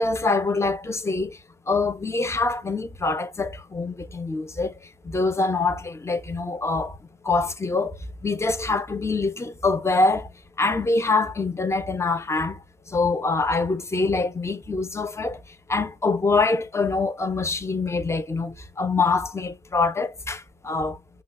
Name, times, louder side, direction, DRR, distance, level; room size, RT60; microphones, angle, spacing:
voice 1, 0.0-1.4 1.7-4.7 5.0-7.0 7.2-10.3 10.6-12.6 12.9-15.4 15.7-21.0, left 3 dB, 15° left, 0.5 m, -24 dB
5.6 x 2.2 x 2.3 m
cardioid pair, 90°, 20 cm